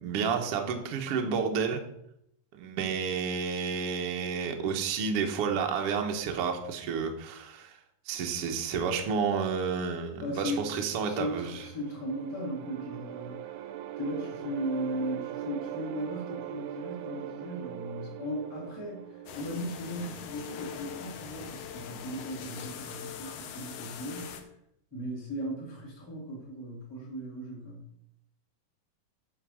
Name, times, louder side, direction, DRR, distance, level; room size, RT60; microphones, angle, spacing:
voice 1, 0.0-1.8 2.5-7.8 8.0-11.6, right 6 dB, 60° right, 3 dB, 1.6 m, -30 dB
voice 2, 10.2-13.6 14.0-24.4 24.9-27.9, equal, 25° left, -3 dB, 2.8 m, -37 dB
sound 1, 11.4-20.3, right 12 dB, 80° right, 2.0 m, -41 dB
sound 2, 19.3-24.4, left 8 dB, 70° left, 2.3 m, -42 dB
9.8 x 4.9 x 6.3 m, 0.74 s
omnidirectional pair, 3.9 m